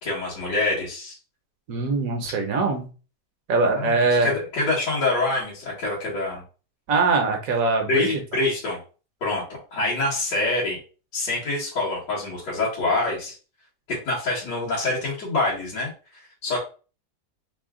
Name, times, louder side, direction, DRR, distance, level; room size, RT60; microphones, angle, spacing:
voice 1, 0.0-1.2 3.7-6.4 7.9-8.8 9.2-10.8 11.1-13.4 13.9-16.6, left 2 dB, 80° left, -9 dB, 2.2 m, -26 dB
voice 2, 1.7-2.9 3.5-4.3 6.9-8.2, right 3 dB, 60° right, 4 dB, 1.1 m, -22 dB
4.2 x 2.3 x 3.6 m, 0.35 s
omnidirectional pair, 1.9 m